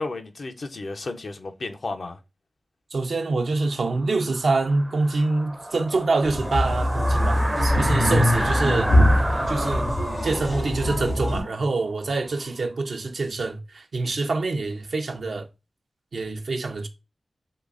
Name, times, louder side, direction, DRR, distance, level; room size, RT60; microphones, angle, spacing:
voice 1, 0.0-2.2, left 3 dB, 70° left, 0.5 m, -33 dB
voice 2, 2.9-8.9 9.5-9.9 10.2-15.5 16.1-16.9, right 3 dB, 80° right, 0.6 m, -26 dB
sound 1, 3.8-12.5, right 1 dB, 20° right, 0.5 m, -31 dB
sound 2, 6.2-11.4, left 1 dB, 85° left, 1.9 m, -22 dB
3.7 x 3.1 x 2.4 m
cardioid pair, 50°, 0 cm